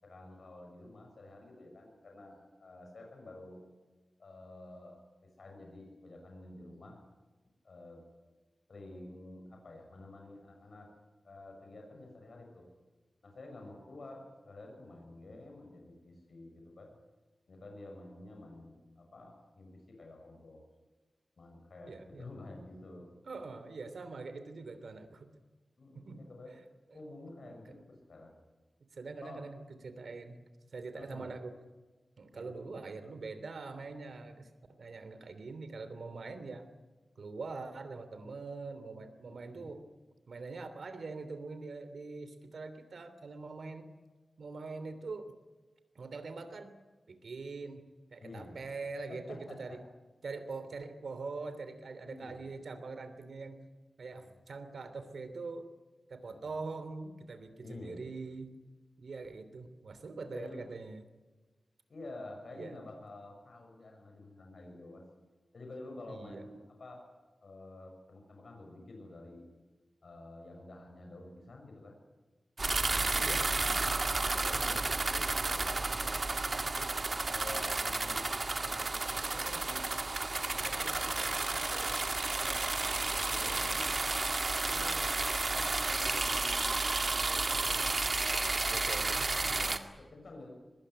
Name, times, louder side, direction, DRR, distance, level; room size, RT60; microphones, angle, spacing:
voice 1, 0.0-3.6 4.2-7.0 7.6-8.0 8.7-10.9 11.2-12.7 13.2-16.9 17.5-20.6 21.4-23.1 25.8-26.6 26.9-28.3 29.2-29.5 30.9-31.3 32.3-32.5 39.3-39.8 48.2-48.6 49.1-49.8 52.0-52.4 54.2-54.3 56.3-56.5 57.6-58.0 60.3-60.6 61.9-65.1 65.5-67.1 67.4-69.5 70.0-72.0 72.7-73.8 74.2-76.2 76.7-76.9 77.3-78.3 78.6-79.9 80.5-84.2 84.6-85.1 85.4-88.0 88.3-88.8 89.1-89.6 90.0-90.5, left 2 dB, 65° left, 2 dB, 6.5 m, -50 dB
voice 2, 21.9-22.3 23.2-25.3 25.9-26.2 27.4-27.8 28.9-30.4 30.7-31.6 32.2-36.7 37.2-39.9 40.3-43.9 44.4-45.3 45.9-46.7 47.1-49.8 50.2-53.6 54.0-55.7 56.1-58.5 59.0-61.0 62.5-62.8 66.1-66.5 73.2-73.5 73.7-74.0 88.7-89.9, right 3 dB, 80° right, 11 dB, 3.1 m, -43 dB
sound 1, 72.6-89.8, right 3 dB, 40° right, 2.0 m, -32 dB
23.5 x 21.0 x 10.0 m, 1.3 s
wide cardioid pair, 110°, 0 cm